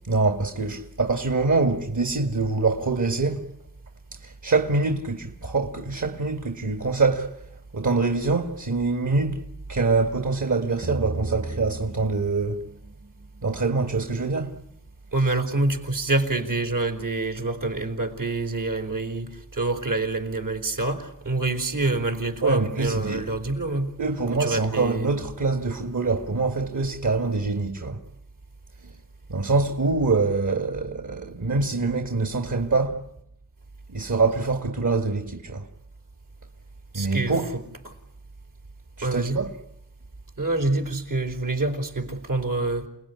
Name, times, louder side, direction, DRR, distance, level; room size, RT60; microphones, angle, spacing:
voice 1, 0.1-3.5 4.1-7.4 7.7-9.4 9.7-12.7 13.4-14.6 22.4-23.2 23.7-28.0 28.8-29.0 29.3-33.1 33.9-35.7 36.9-37.5 39.0-39.5, right 3 dB, 65° right, 2.2 m, -25 dB
sound 1, 10.8-13.8, right 2 dB, 35° right, 1.0 m, -35 dB
voice 2, 15.1-23.9 24.3-25.1 36.9-37.9 39.0-39.4 40.4-42.9, right 2 dB, 80° right, 4.5 m, -26 dB
28.5 x 19.5 x 9.8 m
cardioid pair, 45°, 32 cm